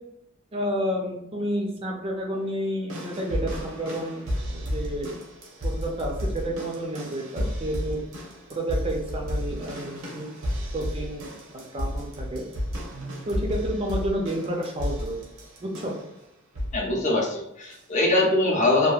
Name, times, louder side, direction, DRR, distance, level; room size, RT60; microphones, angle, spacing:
voice 1, 0.5-5.1 5.6-8.0 8.5-10.3 10.7-12.4 13.3-15.3 15.6-15.9, right 1 dB, 25° right, 0 dB, 0.4 m, -30 dB
sound 1, 2.9-16.1 16.5-16.9 17.7-17.8, equal, 80° right, 0.7 m, -32 dB
voice 2, 16.7-18.9, left 2 dB, 35° left, -1 dB, 0.6 m, -22 dB
2.8 x 2.4 x 2.4 m, 0.84 s
head